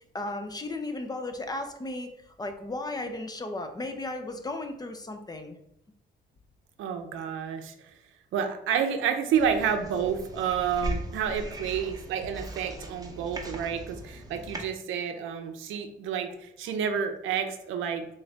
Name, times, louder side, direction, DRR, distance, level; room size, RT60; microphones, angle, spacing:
voice 1, 0.1-2.1 2.4-5.6, left 2 dB, 20° left, 6 dB, 0.5 m, -35 dB
voice 2, 6.8-7.7 8.3-18.1, right 7 dB, 80° right, 6 dB, 0.5 m, -29 dB
sound 1, 9.3-14.6, right 1 dB, 20° right, 0.7 m, -38 dB
3.8 x 2.6 x 3.3 m, 0.77 s
cardioid pair, 90°, 20 cm